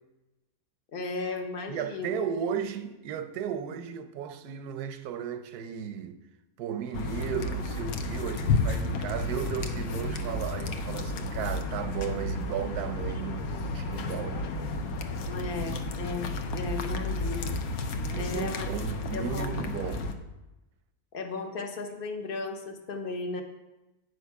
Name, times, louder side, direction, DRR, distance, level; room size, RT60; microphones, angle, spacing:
voice 1, 0.9-2.2 15.3-17.6 18.1-18.7 19.1-19.6 21.1-23.4, left 3 dB, 40° left, 0.9 m, -35 dB
voice 2, 1.7-6.2 6.6-14.5 17.9-20.1, right 8 dB, 85° right, 1.2 m, -35 dB
dog licking, 6.9-20.1, left 2 dB, 75° left, 1.2 m, -32 dB
9.4 x 6.5 x 4.6 m
omnidirectional pair, 1.6 m